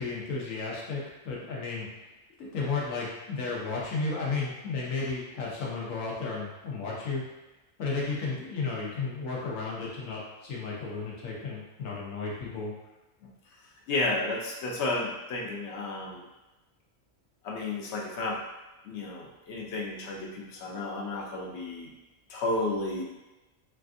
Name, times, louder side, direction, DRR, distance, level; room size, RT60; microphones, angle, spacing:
voice 1, 0.0-1.9 2.4-7.2 7.8-12.7, left 4 dB, 85° left, -4 dB, 1.2 m, -33 dB
voice 2, 13.9-16.2 17.4-18.4 18.9-21.9 22.3-23.0, left 2 dB, 65° left, -1 dB, 0.8 m, -32 dB
3.3 x 2.4 x 2.5 m, 1.1 s
omnidirectional pair, 1.3 m